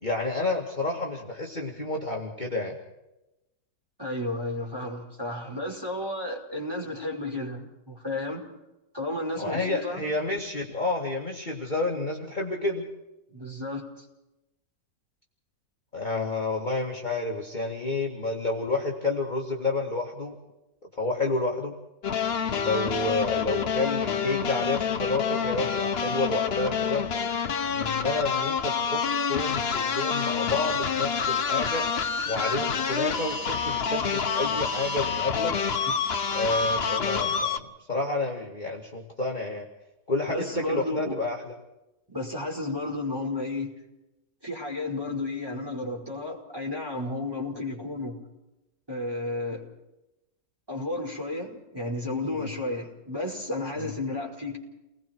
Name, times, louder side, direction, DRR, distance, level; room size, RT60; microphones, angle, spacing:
voice 1, 0.0-2.8 9.4-12.9 15.9-20.3 21.0-21.8 22.5-27.0 27.7-29.0 29.3-31.9 32.3-35.6 36.3-39.7 40.1-41.5 52.3-52.5 53.8-53.9, left 3 dB, 25° left, -2 dB, 2.3 m, -30 dB
voice 2, 4.0-8.4 8.9-10.0 13.3-14.0 35.9-36.0 40.3-41.1 42.1-43.7 44.4-48.2 48.9-49.6 50.7-54.6, left 2 dB, 10° right, -2 dB, 5.2 m, -32 dB
sound 1, 22.0-37.6, left 6 dB, 45° left, 1.0 m, -27 dB
29.5 x 20.5 x 4.6 m, 0.95 s
omnidirectional pair, 1.9 m